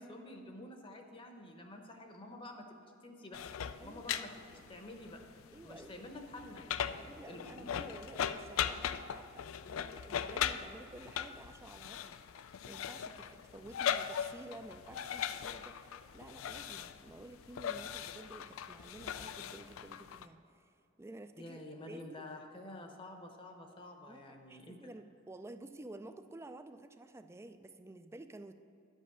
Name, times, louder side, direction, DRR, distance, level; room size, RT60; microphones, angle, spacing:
voice 1, 0.0-3.4 3.8-5.2 5.6-7.8 21.4-24.8, left 1 dB, 25° left, 3 dB, 0.8 m, -49 dB
sound 1, 3.3-20.3, left 9 dB, 90° left, 0.4 m, -39 dB
voice 2, 3.8-4.2 5.5-5.9 6.8-20.7 21.0-21.6 21.9-22.3 24.1-28.5, right 2 dB, 15° right, 9 dB, 0.3 m, -52 dB
10.5 x 5.4 x 6.5 m, 2.7 s
head